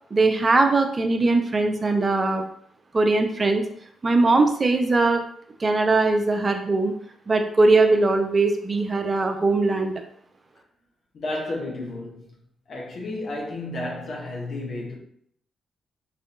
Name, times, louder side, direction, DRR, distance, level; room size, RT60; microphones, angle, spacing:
voice 1, 0.1-2.4 2.9-3.6 4.0-5.2 5.6-6.9 7.3-10.0, right 3 dB, 35° right, 0.5 m, -20 dB
voice 2, 11.1-12.4 12.7-15.0, left 2 dB, 60° left, 0.8 m, -32 dB
4.2 x 2.6 x 2.5 m
supercardioid pair, 55°, 0 cm